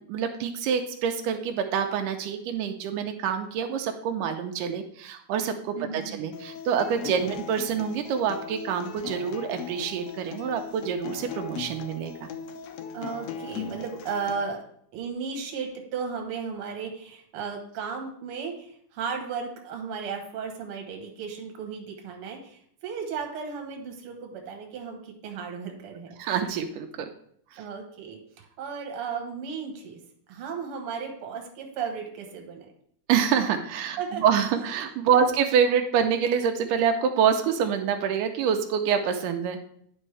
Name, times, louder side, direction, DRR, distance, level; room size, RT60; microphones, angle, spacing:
voice 1, 0.1-12.3 26.2-27.1 27.5-27.6 33.1-39.7, right 7 dB, 85° right, 6 dB, 2.2 m, -26 dB
voice 2, 5.7-6.2 7.0-7.3 12.9-14.6 14.9-26.3 27.6-28.2 28.6-30.0 30.3-32.7 34.0-34.2 35.1-35.3, right 6 dB, 55° right, 2 dB, 1.8 m, -35 dB
Acoustic guitar, 6.3-14.3, left 7 dB, 80° left, 1.6 m, -39 dB
9.9 x 5.3 x 3.3 m, 0.66 s
omnidirectional pair, 3.7 m